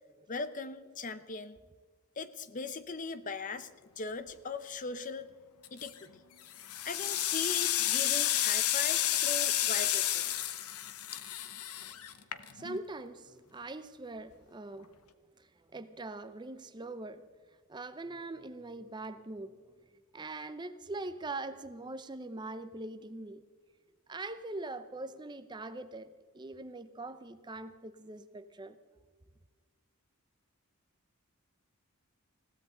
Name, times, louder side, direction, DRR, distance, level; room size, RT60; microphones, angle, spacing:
voice 1, 0.3-1.6 2.2-3.7 4.0-5.3 5.7-6.1 6.8-10.5, left 4 dB, 35° left, 0.7 m, -39 dB
sound 1, 5.6-6.0 6.5-12.8, left 12 dB, 85° left, 0.9 m, -31 dB
voice 2, 12.5-14.9 15.4-17.3 17.7-19.6 20.1-23.5 24.1-28.8, right 2 dB, 20° right, 0.6 m, -42 dB
21.0 x 16.0 x 3.9 m
head